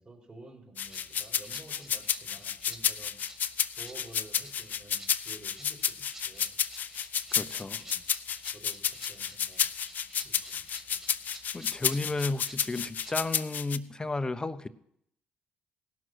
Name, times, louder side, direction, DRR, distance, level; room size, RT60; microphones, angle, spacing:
voice 1, 0.0-3.2 3.8-6.5 7.7-8.0 8.5-9.7 10.2-10.6, right 2 dB, 35° right, 0 dB, 4.1 m, -51 dB
sound 1, 0.8-13.8, left 8 dB, 55° left, 0.5 m, -31 dB
Rattle (instrument), 0.8-13.4, right 1 dB, 15° right, 2.6 m, -52 dB
voice 2, 7.4-7.8 11.5-14.7, left 2 dB, 20° left, 13 dB, 0.7 m, -33 dB
16.5 x 6.2 x 6.2 m, 0.74 s
supercardioid pair, 60°, 3 cm